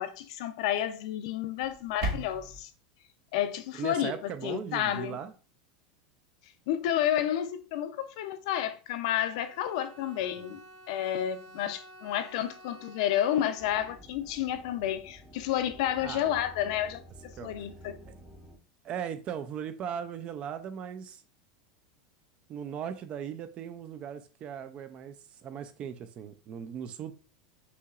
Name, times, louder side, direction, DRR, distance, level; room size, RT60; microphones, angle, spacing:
voice 1, 0.0-2.7 3.3-4.1 4.4-5.2 6.7-10.6 10.9-17.0 17.4-17.9, left 11 dB, 60° left, 0.5 m, -30 dB
sound 1, 1.6-2.6, right 1 dB, 50° right, 1.0 m, -35 dB
voice 2, 3.7-5.3 10.4-10.5 16.0-16.4 17.4-17.5 18.1-18.2 18.8-21.2 22.5-27.1, right 8 dB, 30° right, 0.4 m, -38 dB
Bowed string instrument, 9.1-14.4, right 1 dB, 75° right, 1.3 m, -52 dB
sound 2, 13.6-18.6, right 1 dB, ahead, 0.7 m, -51 dB
5.6 x 2.9 x 2.4 m
supercardioid pair, 160°, 4 cm